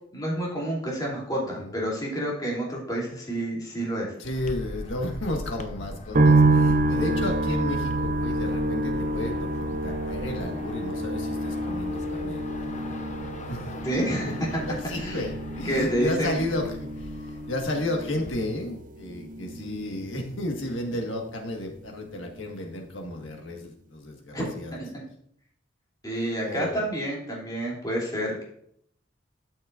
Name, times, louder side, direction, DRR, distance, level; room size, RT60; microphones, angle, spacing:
voice 1, 0.1-4.1 13.8-14.6 14.9-15.2 15.6-16.4 24.3-24.4 24.8-24.9 26.0-28.4, right 1 dB, 20° left, -4 dB, 2.9 m, -29 dB
voice 2, 1.4-1.7 4.2-13.0 13.5-13.8 14.7-24.8 26.4-26.8, left 1 dB, 70° left, 2 dB, 1.6 m, -33 dB
sound 1, 4.2-18.3, left 1 dB, 35° left, 0.7 m, -40 dB
sound 2, 6.1-21.4 21.7-22.5, right 2 dB, 40° right, 0.6 m, -28 dB
12.5 x 6.3 x 2.5 m, 0.68 s
head